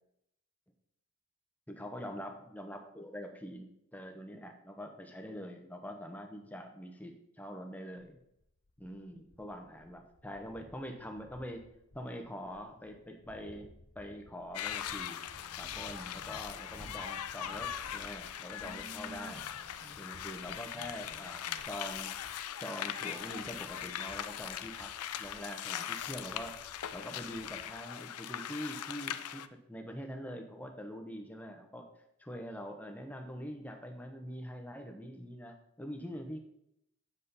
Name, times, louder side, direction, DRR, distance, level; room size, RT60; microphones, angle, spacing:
voice 1, 1.7-8.2 8.8-11.6 11.9-13.7 13.9-15.2 15.6-19.4 20.0-22.3 22.6-26.6 26.9-29.4 29.7-31.9 32.2-36.4, equal, 5° left, 3 dB, 0.9 m, -44 dB
sound 1, 8.1-27.8, left 2 dB, 35° left, 0.6 m, -60 dB
sound 2, 14.5-29.5, left 10 dB, 85° left, 0.5 m, -40 dB
sound 3, 15.4-17.0 17.3-21.6, right 1 dB, 40° right, 2.4 m, -52 dB
8.0 x 7.1 x 4.1 m, 0.78 s
head